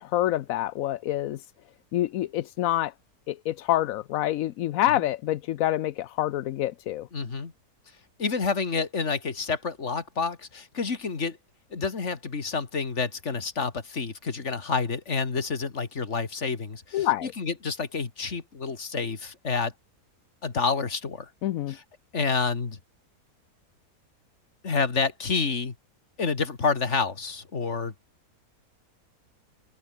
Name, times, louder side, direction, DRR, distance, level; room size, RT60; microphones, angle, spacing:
voice 1, 0.0-1.4 1.9-2.9 3.3-7.1 16.9-17.3 21.4-21.8, left 14 dB, 70° left, 1.0 m, -27 dB
voice 2, 7.1-7.5 8.2-11.4 11.7-19.7 20.4-21.3 21.7-21.8 22.1-22.8 24.6-25.7 26.2-27.9, left 4 dB, 45° left, 2.4 m, -29 dB
omnidirectional pair, 1.7 m